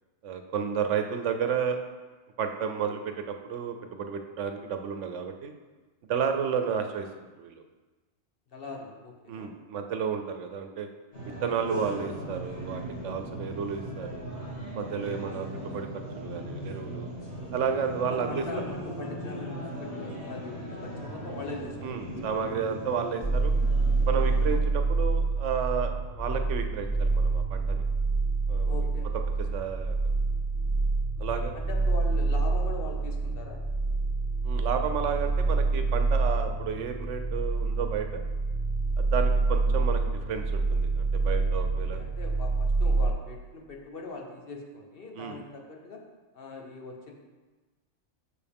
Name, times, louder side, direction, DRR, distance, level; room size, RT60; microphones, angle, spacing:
voice 1, 0.2-1.8 2.4-5.5 6.1-7.1 7.4-7.6 9.3-10.9 11.4-14.3 14.7-17.1 17.5-18.4 21.8-23.5 24.1-27.8 28.5-28.9 29.4-30.0 31.2-31.5 34.4-38.2 39.0-40.0 40.3-42.0 45.2-45.4, right 6 dB, 85° right, 6 dB, 1.0 m, -32 dB
voice 2, 8.5-9.5 18.1-22.1 28.7-29.1 31.3-33.6 41.7-46.0 46.3-47.1, left 3 dB, 55° left, 1 dB, 1.1 m, -41 dB
sound 1, 11.1-24.5, right 1 dB, 70° left, 2.6 m, -38 dB
sound 2, 23.2-43.1, right 3 dB, 5° right, 1.7 m, -27 dB
6.8 x 6.8 x 3.5 m, 1.3 s
omnidirectional pair, 1.2 m